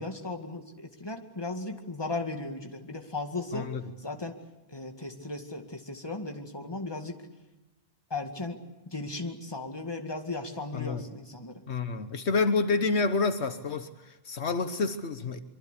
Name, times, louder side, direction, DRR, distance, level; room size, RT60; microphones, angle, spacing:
voice 1, 0.0-3.7 4.0-4.4 4.7-7.2 8.1-8.6 8.9-11.6, left 2 dB, 20° left, 4 dB, 2.1 m, -36 dB
voice 2, 3.5-3.8 10.7-11.0 11.7-15.4, left 4 dB, 75° left, 10 dB, 1.4 m, -28 dB
24.5 x 23.5 x 8.4 m, 1.0 s
omnidirectional pair, 1.2 m